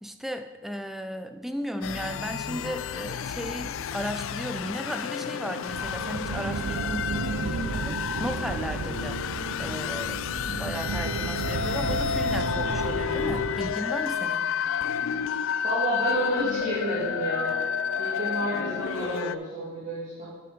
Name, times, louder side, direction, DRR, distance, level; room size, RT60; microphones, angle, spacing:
voice 1, 0.0-14.5, equal, ahead, 7 dB, 0.4 m, -35 dB
sound 1, 1.8-19.3, left 7 dB, 65° left, 0.3 m, -30 dB
sound 2, 5.7-13.7, right 6 dB, 70° right, 0.4 m, -33 dB
sound 3, 11.4-14.9, left 1 dB, 30° left, 1.7 m, -40 dB
voice 2, 15.6-17.6 18.0-20.3, right 1 dB, 35° right, -11 dB, 2.7 m, -30 dB
9.8 x 5.8 x 5.1 m, 1.3 s
head